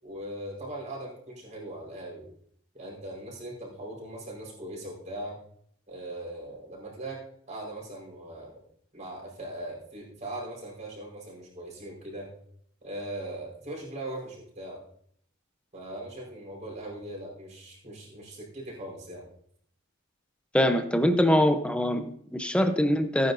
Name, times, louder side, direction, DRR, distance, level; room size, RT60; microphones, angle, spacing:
voice 1, 0.0-2.3 2.7-5.4 5.9-7.2 7.5-8.6 8.9-12.3 12.8-14.8 15.7-19.2, right 1 dB, 35° right, -3 dB, 4.6 m, -40 dB
voice 2, 20.5-23.3, equal, 5° left, 8 dB, 0.7 m, -23 dB
17.0 x 9.7 x 2.7 m, 0.65 s
head